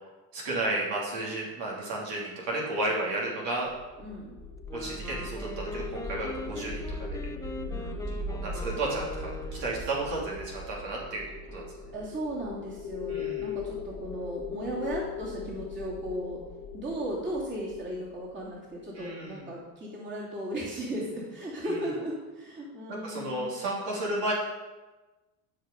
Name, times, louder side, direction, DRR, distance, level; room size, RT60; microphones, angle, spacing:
voice 1, 0.3-3.7 4.7-7.2 8.3-9.3 9.6-11.2 11.5-11.9 13.1-13.6 18.9-19.5 21.6-21.8 22.9-24.3, right 2 dB, 65° right, -4 dB, 3.0 m, -33 dB
sound 1, 3.7-18.8, left 3 dB, 25° left, 1.5 m, -39 dB
voice 2, 4.0-4.3 7.7-8.1 11.9-16.4 16.7-23.5, right 1 dB, 25° right, -6 dB, 2.9 m, -36 dB
Wind instrument woodwind instrument, 4.6-9.9, left 1 dB, 5° left, 0.8 m, -42 dB
12.5 x 5.1 x 5.3 m, 1.2 s
supercardioid pair, 100°, 45 cm